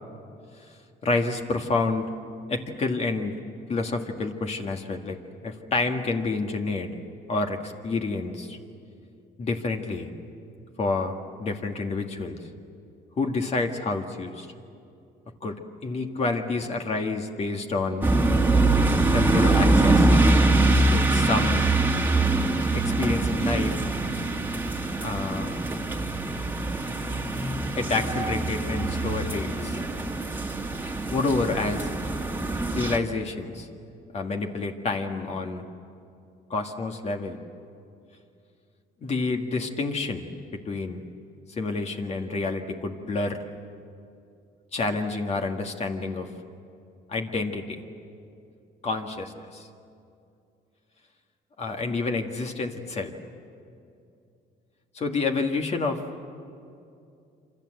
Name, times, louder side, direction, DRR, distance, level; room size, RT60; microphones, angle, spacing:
voice 1, 1.0-2.1 2.5-3.4 3.7-5.2 5.4-6.9 7.3-8.6 9.4-10.1 10.8-12.4 13.2-14.5 15.4-18.1 19.1-20.1 20.9-21.7 22.7-23.8 25.0-25.6 27.7-29.8 31.1-31.9 32.8-33.7 34.1-35.6 36.5-37.4 39.0-40.3 40.5-41.0 41.5-43.4 44.7-46.3 47.1-47.8 48.8-49.7 51.6-53.1 54.9-56.0, left 3 dB, 40° left, 3 dB, 2.0 m, -28 dB
sound 1, 18.0-33.0, right 2 dB, 10° right, 1.9 m, -23 dB
27.0 x 26.0 x 7.9 m, 2.5 s
cardioid pair, 110°, 17 cm